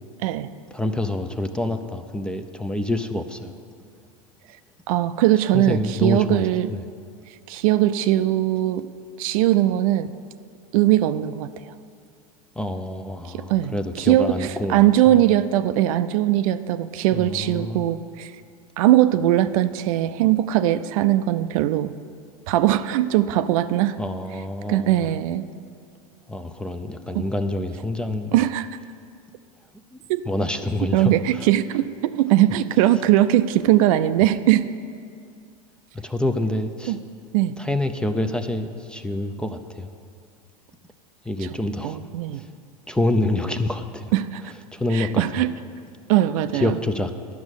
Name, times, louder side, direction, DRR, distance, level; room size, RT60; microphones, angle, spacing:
voice 1, 0.7-3.5 5.5-6.8 12.6-15.2 17.1-17.8 24.0-25.1 26.3-28.5 29.9-30.0 30.3-31.5 36.0-37.0 37.6-39.9 41.2-42.0 42.3-42.5 42.9-44.1 44.7-45.5 46.5-47.1, left 1 dB, 5° left, 7 dB, 0.5 m, -27 dB
voice 2, 4.9-6.7 7.5-8.9 9.2-10.1 10.7-11.5 13.3-13.7 14.0-18.3 18.8-21.9 22.5-24.0 24.7-25.5 27.1-27.2 28.3-28.7 30.1-30.2 30.9-34.7 36.9-37.0 37.3-37.5 41.8-42.4 44.1-44.4 44.9-45.5 46.1-46.7, right 13 dB, 65° right, 12 dB, 0.5 m, -20 dB
10.5 x 6.3 x 8.1 m, 2.3 s
supercardioid pair, 110°, 19 cm